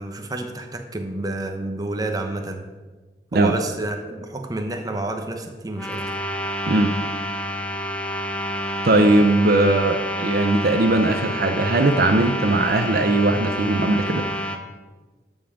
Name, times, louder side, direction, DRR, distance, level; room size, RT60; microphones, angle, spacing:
voice 1, 0.0-2.6 3.3-6.0, right 2 dB, 20° right, 4 dB, 0.9 m, -29 dB
sound 1, 5.7-14.6, equal, 5° left, 0.6 m, -28 dB
voice 2, 8.8-14.2, right 2 dB, 55° right, 7 dB, 0.6 m, -19 dB
13.0 x 5.4 x 5.1 m, 1.3 s
head